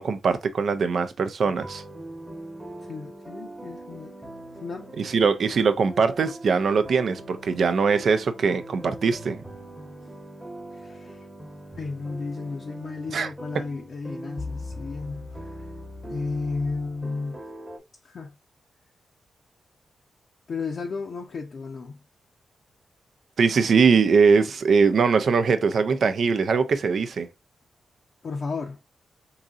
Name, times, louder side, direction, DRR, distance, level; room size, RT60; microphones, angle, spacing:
voice 1, 0.0-1.8 5.0-9.4 13.1-13.6 23.4-27.3, right 5 dB, 70° right, 0.5 m, -21 dB
sound 1, 1.4-17.8, equal, 10° right, 1.0 m, -41 dB
voice 2, 2.8-4.2 4.6-4.9 10.0-10.2 10.7-11.3 11.7-15.6 16.1-17.4 18.0-18.3 20.5-22.0 28.2-28.8, left 4 dB, 65° left, 0.6 m, -33 dB
3.8 x 2.7 x 2.4 m
cardioid pair, 55°, 0 cm